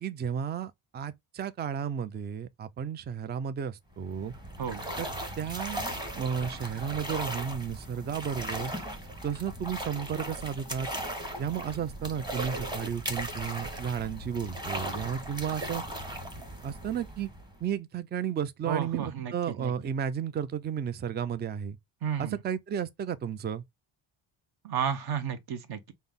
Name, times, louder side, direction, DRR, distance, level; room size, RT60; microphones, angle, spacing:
voice 1, 0.0-4.3 5.0-5.1 5.4-5.8 6.1-8.7 9.2-10.9 11.4-15.8 16.6-17.3 17.6-21.8 22.2-23.6, right 8 dB, 25° right, 0.3 m, -33 dB
sound 1, 3.9-17.7, right 1 dB, 10° right, 1.0 m, -37 dB
voice 2, 18.6-19.7 22.0-22.3 24.6-25.9, right 8 dB, 50° right, 0.9 m, -32 dB
5.4 x 2.0 x 3.5 m
cardioid pair, 115°, 47 cm